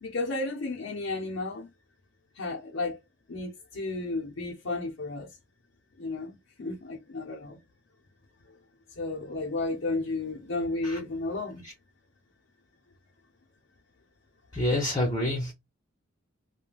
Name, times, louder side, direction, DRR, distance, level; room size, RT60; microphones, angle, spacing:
voice 1, 0.0-1.7 2.4-3.0 3.3-5.3 6.0-7.6 9.0-11.7, left 2 dB, 70° left, 0.7 m, -33 dB
voice 2, 14.5-15.5, left 1 dB, 20° left, 0.7 m, -27 dB
3.2 x 2.2 x 2.3 m
head